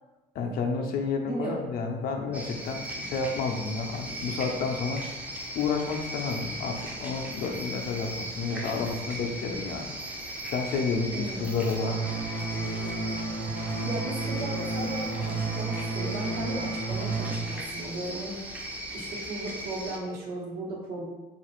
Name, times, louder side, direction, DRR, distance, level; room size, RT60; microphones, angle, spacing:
voice 1, 0.3-5.0 5.6-9.9 10.5-12.0, left 4 dB, 65° left, 3 dB, 0.5 m, -30 dB
voice 2, 1.2-1.6 11.1-11.6 13.8-18.5 18.9-21.0, right 1 dB, 65° right, -3 dB, 1.0 m, -36 dB
sound 1, 2.3-20.0, right 1 dB, 10° right, 0.5 m, -38 dB
sound 2, 11.8-17.3, right 3 dB, 50° right, 0.6 m, -32 dB
3.3 x 2.4 x 3.0 m, 1.2 s
cardioid pair, 110°, 17 cm